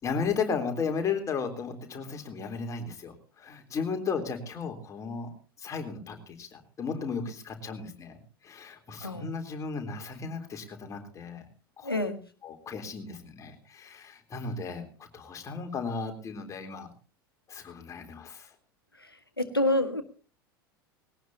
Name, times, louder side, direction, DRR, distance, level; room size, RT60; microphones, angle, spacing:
voice 1, 0.0-5.3 5.6-11.4 11.8-12.0 12.4-14.9 15.1-16.9 17.5-18.5, left 5 dB, 25° left, 4 dB, 3.5 m, -35 dB
voice 2, 9.0-9.4 11.8-12.2 19.0-20.0, left 1 dB, 85° left, 7 dB, 1.7 m, -28 dB
20.5 x 18.0 x 2.8 m, 0.37 s
figure-of-eight pair, 80°, 12 cm